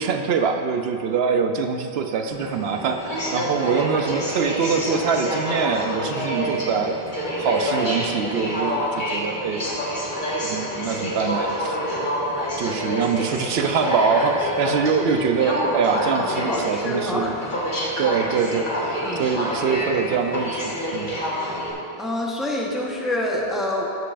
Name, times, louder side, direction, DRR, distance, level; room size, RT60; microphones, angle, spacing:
voice 1, 0.0-7.0 7.4-9.7 10.4-11.8 12.6-17.3 18.0-21.1, right 5 dB, 70° right, 6 dB, 0.8 m, -24 dB
Aircraft, 2.3-21.7, equal, 50° left, 1.7 m, -27 dB
voice 2, 16.2-17.9 19.0-19.3 22.0-23.9, left 1 dB, ahead, -3 dB, 0.9 m, -27 dB
14.0 x 6.7 x 2.5 m, 2.7 s
omnidirectional pair, 1.1 m